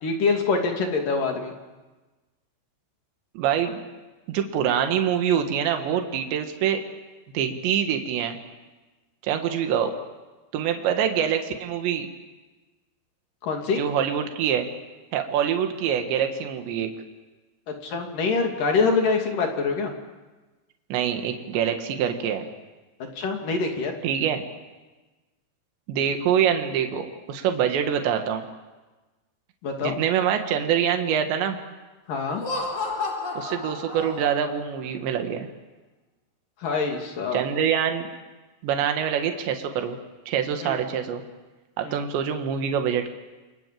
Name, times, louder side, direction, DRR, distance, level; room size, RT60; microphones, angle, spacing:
voice 1, 0.0-1.5 13.4-13.8 17.8-19.9 23.2-23.9 29.6-29.9 32.1-32.4 36.6-37.4 40.6-40.8 41.8-42.0, left 4 dB, 55° left, 3 dB, 4.0 m, -25 dB
voice 2, 3.4-3.8 4.3-6.8 7.3-8.4 9.2-9.9 10.5-12.1 13.8-14.7 15.1-16.9 20.9-22.5 24.0-24.4 25.9-28.4 29.8-31.6 33.4-35.5 37.3-38.1 38.6-40.0 40.3-41.2 41.8-43.1, right 8 dB, 80° right, 5 dB, 3.9 m, -25 dB
Laughter, 32.3-34.6, left 3 dB, 35° left, 4.7 m, -31 dB
29.5 x 24.0 x 7.7 m, 1.2 s
omnidirectional pair, 5.0 m